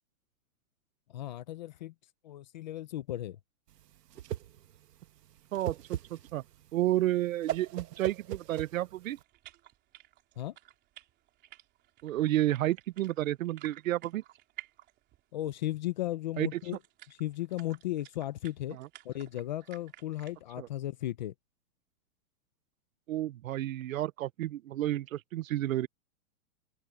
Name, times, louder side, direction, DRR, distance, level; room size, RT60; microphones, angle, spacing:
voice 1, 1.1-1.9 2.2-3.4 10.4-10.5 15.3-16.8 17.1-18.8 19.0-21.3, left 14 dB, 30° left, 0.6 m, -35 dB
Whoosh swoosh swish, 3.7-9.2, right 11 dB, 80° right, 1.6 m, -39 dB
voice 2, 5.5-6.4 6.7-9.2 12.0-14.2 16.4-16.6 18.7-18.9 20.6-20.7 23.1-25.9, right 14 dB, 55° right, 0.9 m, -31 dB
sound 1, 9.0-15.3 15.6-15.7 16.3-20.4, right 16 dB, 20° right, 3.5 m, -54 dB
open air
supercardioid pair, 170°, 47 cm